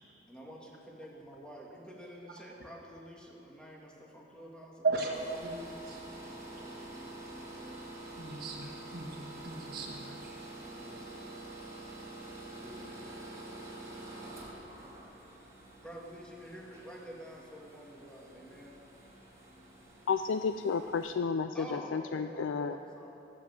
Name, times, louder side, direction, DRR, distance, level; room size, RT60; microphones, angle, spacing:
voice 1, 0.3-5.0 6.2-8.0 10.6-11.3 12.4-13.0 15.8-18.8 21.5-23.3, equal, 5° left, -2 dB, 2.0 m, -49 dB
voice 2, 4.8-5.6 5.9-6.0 8.2-10.3, right 3 dB, 55° right, -3 dB, 1.5 m, -36 dB
sound 1, 5.1-21.1, right 2 dB, 15° right, 2.5 m, -47 dB
voice 3, 20.1-22.8, left 5 dB, 80° left, 9 dB, 0.4 m, -32 dB
18.5 x 7.5 x 7.8 m, 2.8 s
head